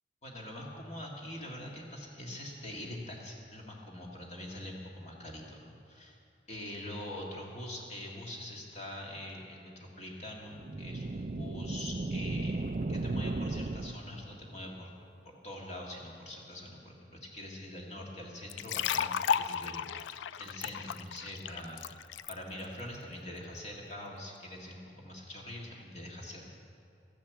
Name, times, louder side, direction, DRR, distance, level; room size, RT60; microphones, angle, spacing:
voice 1, 0.2-6.2 6.5-12.6 12.9-14.9 15.3-21.8 22.3-26.5, left 1 dB, 35° left, -2 dB, 1.9 m, -44 dB
sound 1, 10.5-14.4, right 2 dB, 40° right, 0.4 m, -35 dB
sound 2, 18.5-22.3, left 8 dB, 80° left, 0.3 m, -33 dB
14.0 x 10.0 x 8.1 m, 2.4 s
head